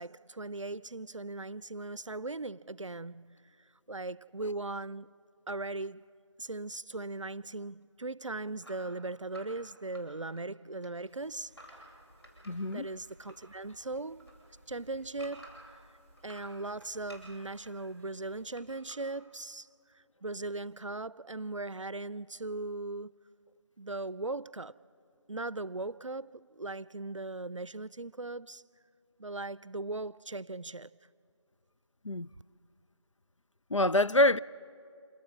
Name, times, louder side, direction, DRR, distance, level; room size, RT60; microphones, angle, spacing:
voice 1, 0.0-3.4 3.9-5.1 5.5-6.1 6.4-11.8 12.7-14.3 14.7-15.5 16.2-19.7 19.9-23.1 23.8-24.8 25.3-28.6 29.2-30.9, right 2 dB, 80° right, 0.5 m, -39 dB
sound 1, 8.6-10.5 10.7-13.5 13.8-15.8 16.2-17.7 18.5-19.0, right 1 dB, 60° left, 7.8 m, -53 dB
sound 2, 11.1-18.5, equal, 25° left, 3.6 m, -61 dB
voice 2, 12.5-12.9 32.0-32.3 33.7-34.4, left 1 dB, 85° left, 0.5 m, -25 dB
27.0 x 20.0 x 7.3 m
figure-of-eight pair, 180°, 16 cm